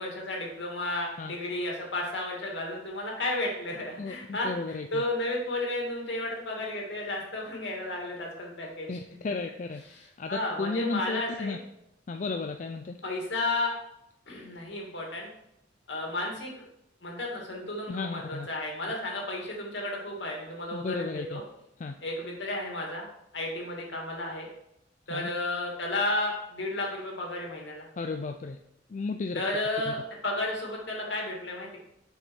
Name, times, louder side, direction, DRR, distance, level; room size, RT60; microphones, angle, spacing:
voice 1, 0.0-8.9 10.3-11.6 13.0-13.7 14.3-15.3 15.9-16.6 17.0-21.4 22.0-23.1 23.3-24.5 25.1-27.9 29.3-31.7, left 2 dB, 70° left, -1 dB, 2.2 m, -33 dB
voice 2, 4.0-5.0 8.9-11.6 12.1-13.0 17.9-18.5 20.7-21.4 21.8-22.0 25.1-25.3 28.0-28.6 28.9-29.5 29.9-30.0, left 3 dB, 40° left, 5 dB, 0.4 m, -34 dB
6.9 x 5.7 x 4.6 m, 0.80 s
head